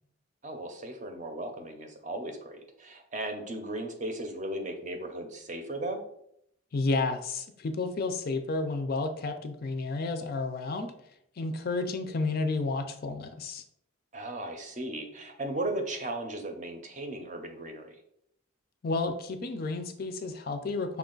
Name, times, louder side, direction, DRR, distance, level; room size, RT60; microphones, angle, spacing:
voice 1, 0.4-6.0 14.1-18.0, right 1 dB, 35° right, 5 dB, 0.6 m, -36 dB
voice 2, 6.7-10.9 11.4-13.6 18.8-21.0, left 3 dB, 45° left, 7 dB, 0.4 m, -31 dB
5.8 x 2.3 x 3.8 m, 0.73 s
head